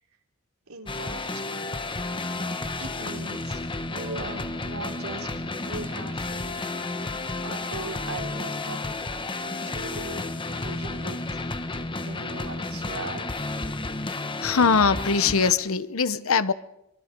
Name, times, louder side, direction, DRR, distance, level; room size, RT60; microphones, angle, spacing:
voice 1, 0.7-1.2 2.8-5.3 5.6-6.5 7.4-8.8 9.4-11.4 12.0-13.3, right 2 dB, 75° right, 3.6 m, -39 dB
sound 1, 0.9-15.5, left 2 dB, 25° left, 1.2 m, -32 dB
sound 2, 3.9-10.1, left 2 dB, 30° right, 5.4 m, -49 dB
voice 2, 14.4-16.5, left 5 dB, 70° left, 0.9 m, -22 dB
25.5 x 23.5 x 5.3 m
head